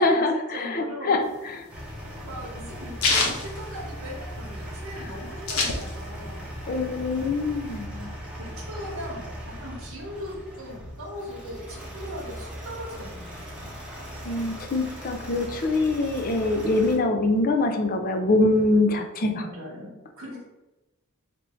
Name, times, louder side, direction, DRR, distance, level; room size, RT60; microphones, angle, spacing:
voice 1, 0.0-1.7 6.7-8.1 14.2-19.3, left 2 dB, 40° left, 5 dB, 0.5 m, -24 dB
voice 2, 0.5-1.2 2.3-6.5 8.4-13.8 19.4-20.4, equal, 75° right, -4 dB, 1.0 m, -39 dB
sound 1, 1.3-4.4 4.8-4.9 5.0-6.3 6.7-7.8, left 3 dB, 75° left, 0.8 m, -27 dB
sound 2, 1.7-17.0, equal, 5° right, 0.8 m, -39 dB
3.5 x 2.6 x 4.2 m, 1.0 s
head